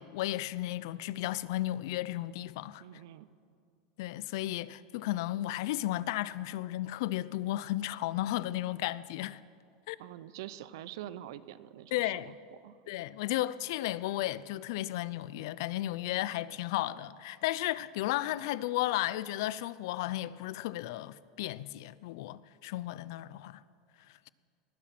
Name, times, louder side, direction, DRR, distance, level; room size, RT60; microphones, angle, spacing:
voice 1, 0.0-2.8 4.0-9.4 9.9-10.0 11.9-12.3 12.9-23.6, left 15 dB, 70° left, 0.4 m, -34 dB
voice 2, 2.8-3.3 10.0-12.4 12.6-12.7, right 12 dB, 75° right, 0.6 m, -45 dB
19.5 x 8.3 x 5.9 m
supercardioid pair, 155°, 2 cm